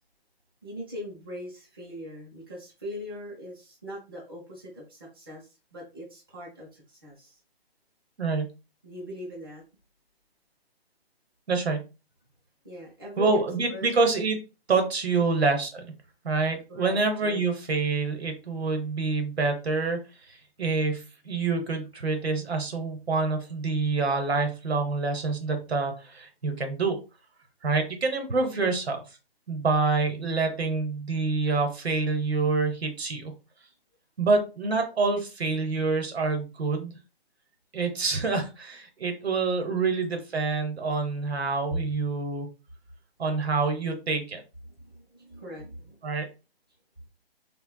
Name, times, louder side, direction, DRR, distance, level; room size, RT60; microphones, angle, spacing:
voice 1, 0.6-7.4 8.8-9.6 12.6-13.4 13.7-13.9 15.1-15.3 16.7-17.4 28.5-28.7 39.8-39.9 44.6-46.0, left 1 dB, 25° right, -5 dB, 0.6 m, -41 dB
voice 2, 11.5-11.8 13.2-14.4 14.7-15.8 16.2-27.0 27.6-29.0 29.5-33.3 34.2-37.0 37.7-42.5 43.2-44.4 46.0-46.3, right 4 dB, 80° right, 6 dB, 0.9 m, -27 dB
3.6 x 2.2 x 2.2 m, 0.30 s
hypercardioid pair, 180°, 31 cm